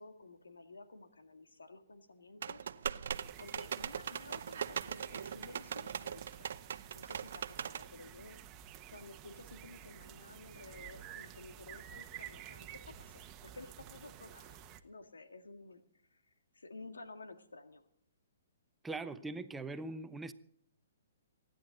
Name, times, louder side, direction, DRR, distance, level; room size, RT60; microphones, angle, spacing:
voice 1, 0.0-2.7 3.4-6.5 6.9-8.4 8.9-14.6 14.8-15.8 16.1-16.2 16.5-17.8, left 3 dB, 85° left, 2.0 m, -53 dB
sound 1, 2.4-7.9, right 8 dB, 65° right, 0.7 m, -40 dB
sound 2, 3.1-14.8, right 10 dB, 25° right, 1.3 m, -52 dB
voice 2, 18.8-20.3, right 3 dB, 10° right, 0.8 m, -41 dB
25.0 x 11.0 x 4.0 m
hypercardioid pair, 130°, 0 cm